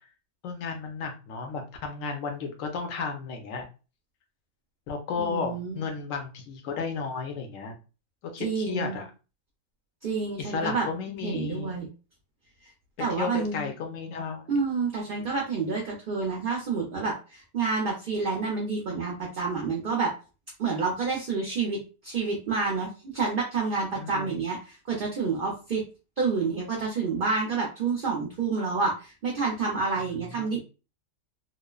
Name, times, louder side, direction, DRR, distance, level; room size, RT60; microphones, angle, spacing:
voice 1, 0.4-3.7 4.9-7.8 8.2-9.1 10.4-11.8 13.0-14.4 23.9-24.4 30.1-30.6, left 5 dB, 70° left, 4 dB, 1.0 m, -33 dB
voice 2, 5.2-5.8 8.4-9.0 10.0-10.9 11.2-11.9 13.0-13.7 14.5-20.1 20.6-25.8 26.2-30.6, right 4 dB, 50° right, -2 dB, 0.6 m, -29 dB
3.0 x 2.0 x 2.3 m, 0.33 s
omnidirectional pair, 1.5 m